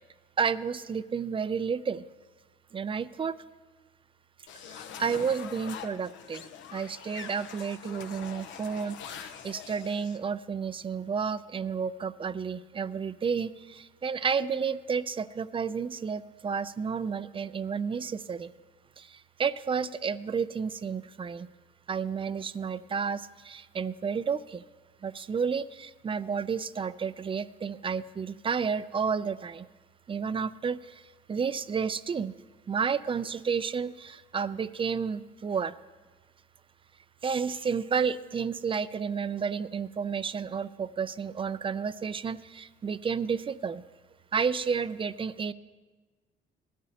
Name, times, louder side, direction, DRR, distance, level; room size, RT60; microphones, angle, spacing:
voice 1, 0.4-2.1 2.7-3.4 4.7-6.5 6.7-18.5 19.0-21.5 21.9-24.6 25.0-29.7 30.1-31.0 31.3-32.3 32.7-35.7 37.2-43.8 44.3-45.5, right 6 dB, 30° right, 15 dB, 0.4 m, -31 dB
sound 1, 4.5-10.2, left 8 dB, 80° left, 0.8 m, -44 dB
19.0 x 12.5 x 2.9 m, 1.3 s
cardioid pair, 105°, 19 cm